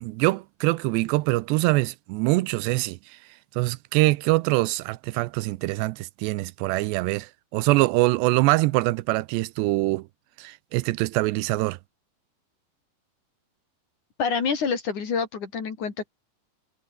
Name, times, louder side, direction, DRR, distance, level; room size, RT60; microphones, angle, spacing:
voice 1, 0.0-3.0 3.6-10.1 10.4-11.8, right 21 dB, 85° right, 2.8 m, -24 dB
voice 2, 14.2-16.1, left 6 dB, 45° left, 4.6 m, -27 dB
omnidirectional pair, 4.9 m